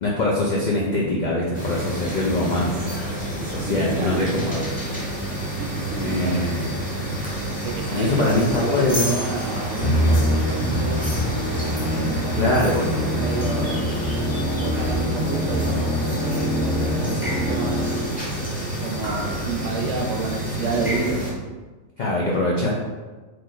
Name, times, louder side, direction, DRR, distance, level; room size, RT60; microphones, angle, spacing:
voice 1, 0.0-2.9 3.3-4.7 6.0-6.7 7.9-9.1 12.3-12.9 22.0-22.7, left 2 dB, 80° left, -4 dB, 0.4 m, -23 dB
sound 1, 1.5-21.3, right 1 dB, 10° left, 0.7 m, -28 dB
voice 2, 3.6-4.2 5.6-6.4 7.6-11.0 12.0-13.7 14.4-15.9 16.5-18.0 18.8-21.2, right 4 dB, 70° right, 1 dB, 0.9 m, -30 dB
sound 2, 4.6-21.0, left 1 dB, 25° left, 1.6 m, -43 dB
Musical instrument, 9.8-18.3, left 1 dB, 65° left, 1.0 m, -25 dB
3.0 x 2.4 x 3.9 m, 1.3 s
omnidirectional pair, 1.4 m